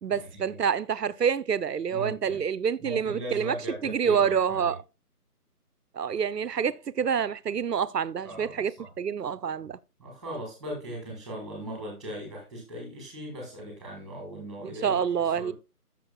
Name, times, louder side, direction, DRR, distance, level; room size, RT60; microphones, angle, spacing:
voice 1, 0.0-3.6 3.8-4.8 5.9-9.8 14.6-15.5, right 7 dB, 85° right, 0.7 m, -27 dB
voice 2, 1.9-2.4 2.8-4.7 8.2-8.9 10.0-15.0 15.4-15.5, right 1 dB, ahead, 1.3 m, -38 dB
13.5 x 6.3 x 2.3 m
figure-of-eight pair, 155°, 47 cm